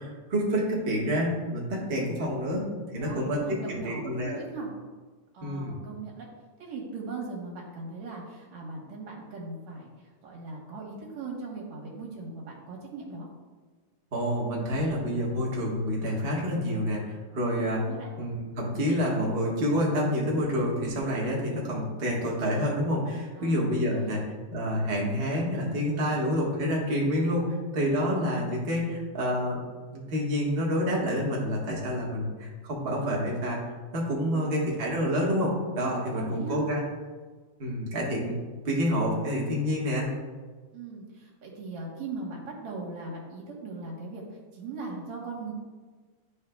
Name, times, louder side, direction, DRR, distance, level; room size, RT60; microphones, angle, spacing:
voice 1, 0.0-2.6 2.9-3.4 3.7-4.4 5.4-5.8 14.1-17.8 18.2-24.2 24.5-29.6 29.9-33.6 33.9-36.8 37.6-38.4 38.6-40.1, equal, 40° right, -4 dB, 0.8 m, -28 dB
voice 2, 3.0-4.7 5.3-6.3 6.6-9.9 10.2-13.3 17.5-18.1 23.4-24.3 34.3-34.8 36.1-36.6 40.7-44.2 44.5-45.5, right 3 dB, 70° right, -2 dB, 2.5 m, -39 dB
11.5 x 4.6 x 2.3 m, 1.4 s
omnidirectional pair, 3.3 m